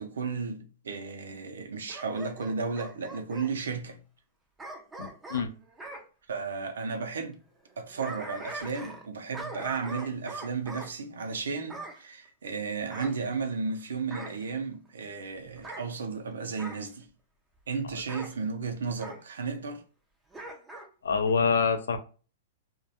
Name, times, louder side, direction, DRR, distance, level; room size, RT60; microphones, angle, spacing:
voice 1, 0.0-4.0 6.3-7.4 7.8-17.1 17.7-19.8, right 5 dB, 90° right, 0.5 m, -34 dB
Bark / Growling, 1.9-3.5 4.6-6.1 7.7-9.1 9.3-10.9 11.7-12.0 12.9-13.7 14.1-14.4 15.5-15.9 16.6-16.9 18.1-18.3 19.0-19.2 20.3-20.9 21.3-21.4, right 2 dB, 10° right, 0.4 m, -42 dB
voice 2, 5.0-5.5 21.0-22.0, left 5 dB, 85° left, 0.4 m, -26 dB
2.3 x 2.1 x 2.7 m
hypercardioid pair, 135°, 0 cm